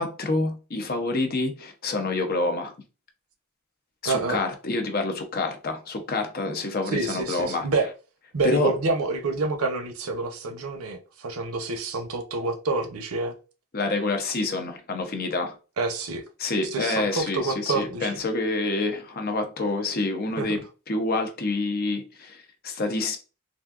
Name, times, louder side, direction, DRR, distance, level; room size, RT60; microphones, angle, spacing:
voice 1, 0.0-2.7 4.0-7.7 8.4-8.7 13.7-15.6 16.4-23.2, left 2 dB, 45° left, 0.6 m, -27 dB
voice 2, 4.0-4.4 6.9-7.9 8.3-13.3 15.8-16.2 16.7-18.2 20.4-20.6, right 3 dB, 85° right, 0.7 m, -28 dB
3.5 x 2.6 x 2.3 m
head